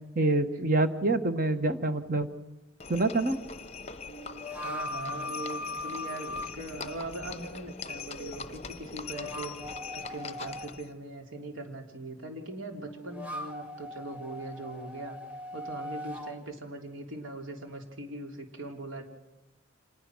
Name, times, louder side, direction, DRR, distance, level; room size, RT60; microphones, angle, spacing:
voice 1, 0.1-2.3 2.9-3.4, right 2 dB, 40° right, 9 dB, 1.3 m, -26 dB
Livestock farm animals working animals, 2.8-10.9, left 5 dB, 30° left, 0.8 m, -42 dB
sound 1, 4.0-6.5 8.9-10.7 12.8-16.4, left 1 dB, 5° right, 2.0 m, -39 dB
voice 2, 4.5-15.2 15.5-19.0, right 2 dB, 65° right, 3 dB, 3.3 m, -41 dB
26.5 x 20.0 x 6.3 m, 1.0 s
head